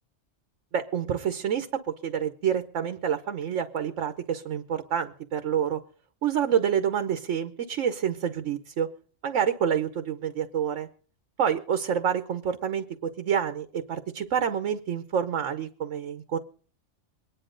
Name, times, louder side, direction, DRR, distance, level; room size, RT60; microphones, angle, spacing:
voice 1, 0.7-1.7 2.0-5.8 6.2-8.9 9.2-10.9 11.4-16.4, right 8 dB, 80° right, 9 dB, 1.2 m, -28 dB
23.5 x 10.0 x 3.8 m, 0.43 s
omnidirectional pair, 1.3 m